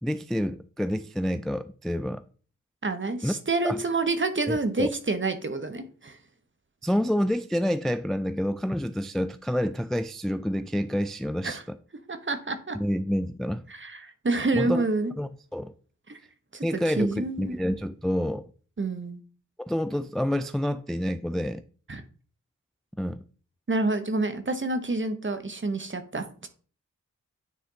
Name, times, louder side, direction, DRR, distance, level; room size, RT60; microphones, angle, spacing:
voice 1, 0.0-2.2 3.2-3.3 3.6-3.8 4.5-4.9 6.8-11.8 12.7-13.7 14.5-14.8 15.2-15.7 16.6-18.4 19.7-21.6 23.0-23.2, equal, ahead, 0.3 m, -28 dB
voice 2, 2.8-6.2 11.4-11.6 12.1-12.8 13.7-15.1 16.1-16.2 16.5-17.6 18.8-19.2 21.9-22.0 23.7-26.5, right 3 dB, 40° right, 1.0 m, -28 dB
9.4 x 3.4 x 4.0 m
wide cardioid pair, 55°, 32 cm